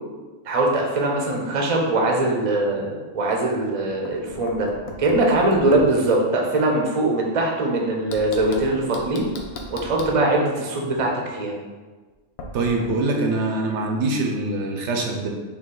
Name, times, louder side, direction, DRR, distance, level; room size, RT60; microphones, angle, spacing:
voice 1, 0.5-4.7 5.0-9.3 9.7-11.6, right 2 dB, 35° right, 0 dB, 0.6 m, -21 dB
Knock, 3.8-6.0 8.1-10.2 12.4-12.9, left 2 dB, 65° left, 0.8 m, -38 dB
voice 2, 12.5-15.3, right 2 dB, 75° right, 2 dB, 0.9 m, -24 dB
4.3 x 2.7 x 3.8 m, 1.3 s
omnidirectional pair, 1.3 m